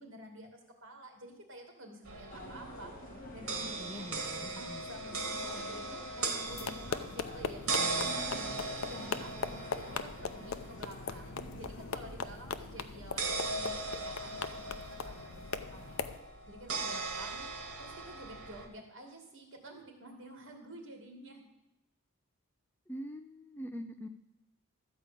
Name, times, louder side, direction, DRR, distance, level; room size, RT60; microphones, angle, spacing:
voice 1, 0.0-2.9 3.3-4.1 4.5-9.3 9.7-16.0 16.5-21.4, right 1 dB, 60° right, 2 dB, 2.5 m, -50 dB
sound 1, 2.1-18.7, right 3 dB, 80° right, 1.8 m, -39 dB
sound 2, 2.3-12.3, equal, 40° left, 1.5 m, -48 dB
voice 2, 3.8-4.8 22.9-24.1, equal, 10° left, 7 dB, 0.5 m, -44 dB
sound 3, 6.5-16.2, left 5 dB, 70° left, 0.6 m, -40 dB
13.0 x 4.9 x 8.5 m, 0.90 s
head